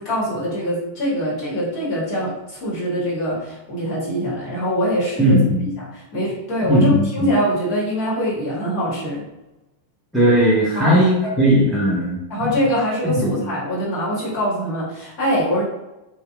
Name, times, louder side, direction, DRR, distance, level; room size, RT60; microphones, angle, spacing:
voice 1, 0.0-5.4 5.8-9.2 10.7-11.0 12.3-15.7, equal, 40° left, -7 dB, 1.1 m, -23 dB
voice 2, 5.2-5.6 6.7-7.1 10.1-12.2 13.0-13.4, equal, 5° right, -7 dB, 0.6 m, -17 dB
2.8 x 2.1 x 2.2 m, 0.99 s
figure-of-eight pair, 90°, 0 cm